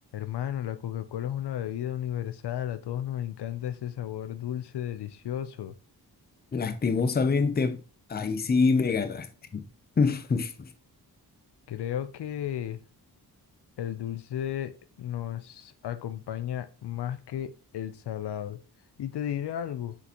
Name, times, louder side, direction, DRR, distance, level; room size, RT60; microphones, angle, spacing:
voice 1, 0.1-5.7 11.7-12.8 13.8-18.6 19.0-20.0, left 10 dB, 75° left, 0.6 m, -34 dB
voice 2, 6.5-7.8 8.1-9.3 9.5-9.6 10.0-10.7, left 4 dB, 25° left, 0.5 m, -25 dB
6.6 x 5.0 x 2.9 m
wide cardioid pair, 140°, 40 cm